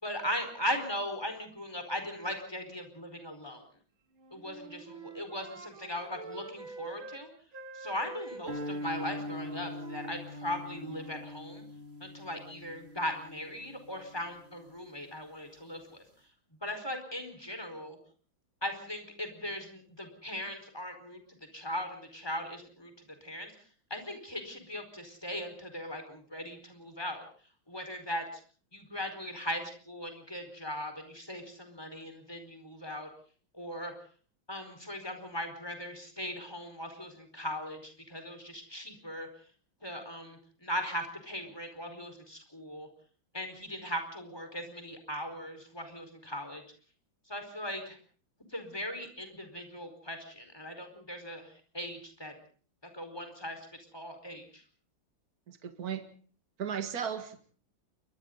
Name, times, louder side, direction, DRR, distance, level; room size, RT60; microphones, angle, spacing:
voice 1, 0.0-3.7 4.3-7.3 7.7-11.6 12.0-16.0 16.6-18.0 18.6-21.2 21.5-23.5 23.9-27.3 27.7-28.4 28.7-33.1 33.5-33.9 34.5-39.3 39.8-42.9 43.3-46.6 47.3-48.0 48.5-52.3 52.9-53.7 53.9-54.6, equal, 10° left, 6 dB, 4.7 m, -39 dB
Wind instrument woodwind instrument, 4.1-7.2 7.5-11.3, right 4 dB, 85° right, 2.9 m, -47 dB
sound 1, 8.5-14.8, left 1 dB, 30° right, 3.8 m, -42 dB
voice 2, 55.5-56.0 56.6-57.4, right 8 dB, 50° right, 7 dB, 2.2 m, -35 dB
29.5 x 23.5 x 4.0 m, 0.44 s
omnidirectional pair, 2.2 m